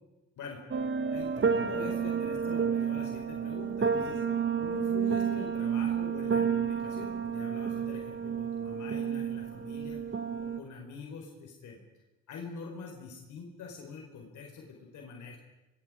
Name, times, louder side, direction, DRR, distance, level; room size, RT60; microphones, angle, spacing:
sound 1, 0.7-10.6, right 7 dB, 40° right, 1.8 m, -30 dB
voice 1, 1.1-4.2 4.6-10.0 10.4-11.8 12.3-15.4, left 4 dB, 75° left, 0 dB, 4.6 m, -44 dB
29.0 x 24.5 x 5.0 m, 1.1 s
cardioid pair, 90°, 30 cm